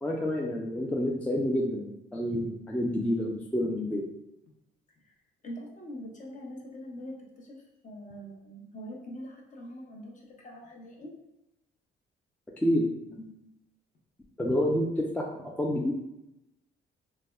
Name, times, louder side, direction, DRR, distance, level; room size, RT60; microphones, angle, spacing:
voice 1, 0.0-4.0 12.6-12.9 13.2-13.3 14.4-15.9, left 1 dB, 5° left, -1 dB, 0.3 m, -28 dB
voice 2, 5.4-11.1, equal, 40° left, -1 dB, 0.7 m, -43 dB
3.3 x 2.1 x 2.2 m, 0.88 s
cardioid pair, 90°, 20 cm